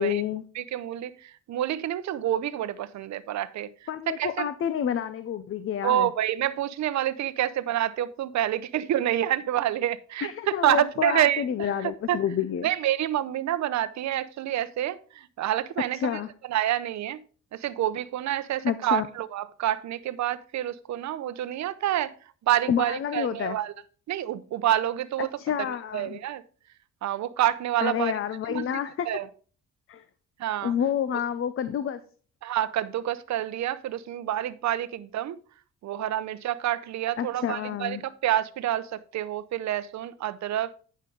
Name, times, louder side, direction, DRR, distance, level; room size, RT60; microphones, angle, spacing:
voice 1, 0.0-0.4 3.9-6.1 10.2-12.7 15.9-16.3 18.6-19.1 22.7-23.6 25.4-26.2 27.8-29.1 29.9-30.0 30.6-32.0 37.2-38.0, left 9 dB, 45° left, 0.6 m, -29 dB
voice 2, 0.5-3.7 4.1-4.4 5.8-12.2 12.6-17.2 17.5-22.1 22.5-23.7 24.1-25.3 25.7-26.4 27.0-28.2 28.4-29.3 30.4-30.7 32.4-35.4 35.8-40.8, right 12 dB, 65° right, 0.7 m, -28 dB
9.2 x 6.4 x 3.8 m
cardioid pair, 90°, 30 cm